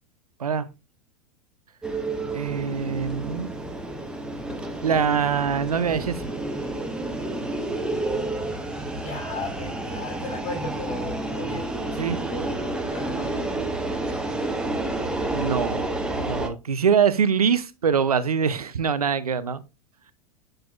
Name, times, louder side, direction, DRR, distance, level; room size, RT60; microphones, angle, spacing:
sound 1, 1.8-16.5, right 2 dB, 5° right, 0.9 m, -30 dB
voice 1, 2.3-3.5 4.8-6.2 12.0-12.2 15.3-19.6, right 6 dB, 75° right, 0.6 m, -24 dB
voice 2, 9.0-11.7 12.3-13.5, left 3 dB, 55° left, 4.3 m, -36 dB
7.8 x 5.9 x 2.3 m
figure-of-eight pair, 90°, 19 cm